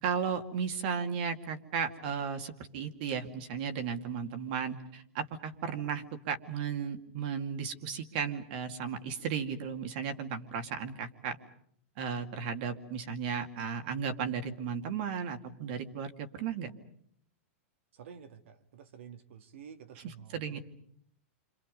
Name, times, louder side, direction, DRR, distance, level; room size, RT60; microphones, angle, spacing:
voice 1, 0.0-11.4 12.0-16.7 20.0-20.6, right 6 dB, 45° right, 6 dB, 2.3 m, -35 dB
voice 2, 17.9-20.6, right 8 dB, 65° right, 8 dB, 2.3 m, -50 dB
30.0 x 26.5 x 5.4 m, 0.67 s
supercardioid pair, 175°, 7 cm